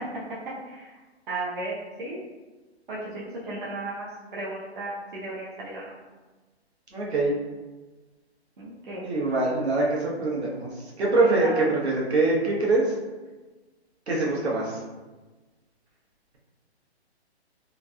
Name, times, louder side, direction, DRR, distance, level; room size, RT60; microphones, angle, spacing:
voice 1, 1.3-2.2 2.9-4.1 4.3-5.9 8.6-9.1 11.2-11.6, right 2 dB, 50° right, -7 dB, 0.7 m, -34 dB
voice 2, 6.9-7.4 9.0-10.7 11.0-12.8 14.1-14.8, right 2 dB, 70° right, -4 dB, 1.1 m, -24 dB
3.1 x 2.6 x 2.2 m, 1.2 s
hypercardioid pair, 170°, 33 cm